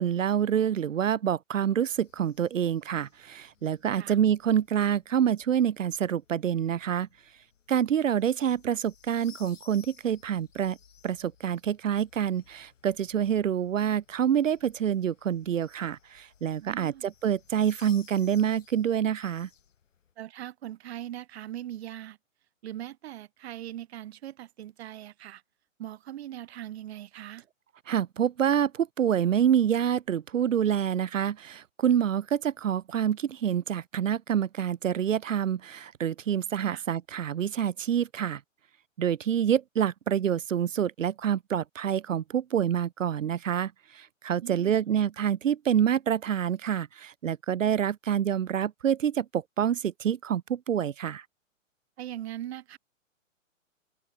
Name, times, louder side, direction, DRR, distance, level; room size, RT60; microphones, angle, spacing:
voice 1, 0.0-7.1 7.7-10.8 11.0-19.5 27.9-38.4 39.0-51.2, right 9 dB, 75° right, 0.9 m, -27 dB
sound 1, 1.9-20.1, left 8 dB, 70° left, 3.6 m, -59 dB
voice 2, 16.6-17.1 20.2-22.2 22.6-25.4 25.8-27.4 36.6-36.8 44.4-44.9 52.0-52.8, right 12 dB, 50° right, 3.1 m, -40 dB
open air
figure-of-eight pair, 125°, 39 cm